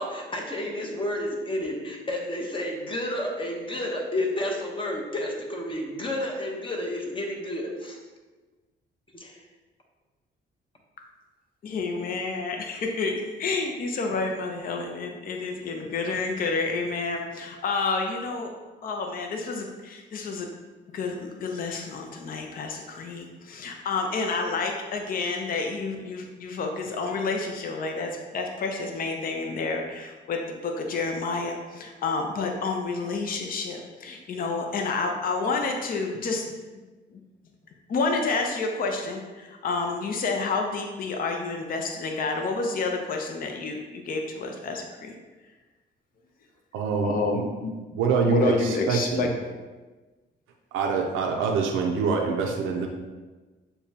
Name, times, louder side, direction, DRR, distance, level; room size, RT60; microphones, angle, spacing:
voice 1, 0.0-8.0 9.1-9.4, left 1 dB, 25° left, 0 dB, 0.9 m, -31 dB
voice 2, 11.6-18.5 18.8-20.5 20.9-36.4 37.1-37.2 37.9-45.1 47.0-47.8 48.3-49.3, left 3 dB, 45° left, 2 dB, 0.5 m, -29 dB
voice 3, 46.7-47.4 47.9-49.3 50.7-52.9, right 5 dB, 90° right, 1 dB, 0.5 m, -25 dB
6.7 x 2.2 x 2.8 m, 1.3 s
cardioid pair, 90°, 20 cm